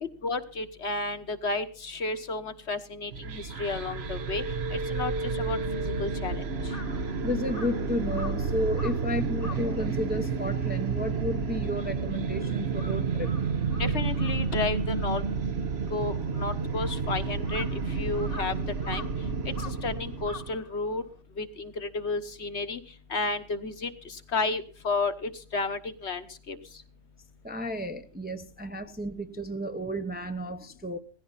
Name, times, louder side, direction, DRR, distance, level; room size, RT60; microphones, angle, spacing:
voice 1, 0.0-4.4 4.7-6.4 13.8-15.2 15.9-18.5 18.9-19.0 19.4-21.0 21.4-22.8 23.1-26.6, left 3 dB, 60° left, 1.6 m, -32 dB
sound 1, 3.1-20.6, right 5 dB, 55° right, 1.3 m, -30 dB
Crow, 5.7-12.3 12.6-21.2, left 3 dB, 30° left, 1.2 m, -47 dB
voice 2, 7.2-13.3 27.4-31.0, equal, 10° right, 0.8 m, -32 dB
17.5 x 15.0 x 4.1 m
omnidirectional pair, 1.3 m